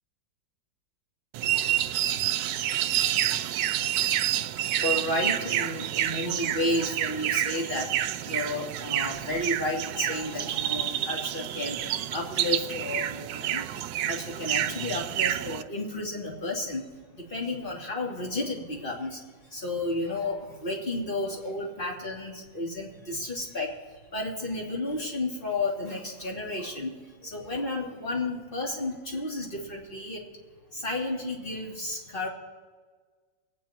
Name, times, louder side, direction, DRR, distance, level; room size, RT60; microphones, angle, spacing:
sound 1, 1.3-15.6, right 12 dB, 75° right, 1.2 m, -29 dB
voice 1, 4.8-30.3 30.7-32.3, left 2 dB, 30° left, -2 dB, 2.5 m, -32 dB
23.5 x 9.5 x 4.3 m, 1.5 s
omnidirectional pair, 2.0 m